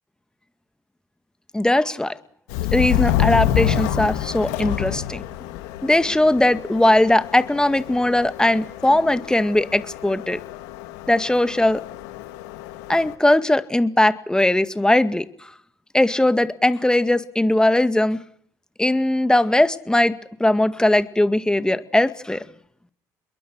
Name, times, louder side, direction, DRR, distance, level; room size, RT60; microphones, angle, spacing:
voice 1, 1.5-2.2 2.7-5.2 5.8-10.4 11.1-11.8 12.9-15.3 15.9-18.2 18.8-22.4, left 1 dB, 10° left, 12 dB, 2.0 m, -19 dB
Subway metro underground, 2.5-13.1, left 12 dB, 85° left, 2.2 m, -27 dB
28.0 x 22.0 x 6.4 m, 0.64 s
hypercardioid pair, 65°, 9 cm